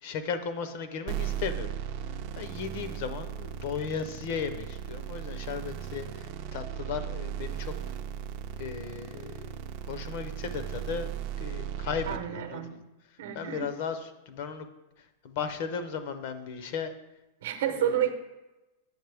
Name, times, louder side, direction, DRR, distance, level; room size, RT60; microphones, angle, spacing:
voice 1, 0.0-1.7 2.4-7.7 8.6-9.5 9.8-11.1 11.4-12.8 13.3-14.7 15.2-16.9 17.7-18.0, left 6 dB, 40° left, 10 dB, 0.6 m, -36 dB
sound 1, 1.1-12.2, right 9 dB, 35° right, 0.4 m, -37 dB
voice 2, 12.1-12.7 13.2-13.7 17.4-18.1, right 11 dB, 60° right, 7 dB, 0.8 m, -30 dB
7.9 x 6.2 x 3.4 m, 1.0 s
supercardioid pair, 175°, 0 cm